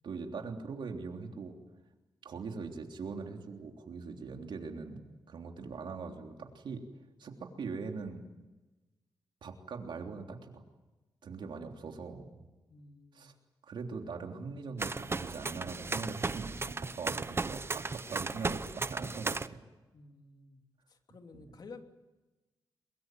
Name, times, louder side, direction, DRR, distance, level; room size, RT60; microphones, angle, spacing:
voice 1, 0.0-1.5 2.2-6.8 7.2-8.2 9.4-10.5 11.2-12.3 13.1-13.3 13.6-19.6, right 4 dB, 75° right, 3 dB, 3.4 m, -41 dB
voice 2, 12.7-13.3 19.9-20.6 20.9-21.8, left 4 dB, 55° left, 5 dB, 3.0 m, -52 dB
sound 1, 14.8-19.5, right 3 dB, 30° right, 0.9 m, -35 dB
22.5 x 22.5 x 9.3 m, 1.1 s
cardioid pair, 70°, 8 cm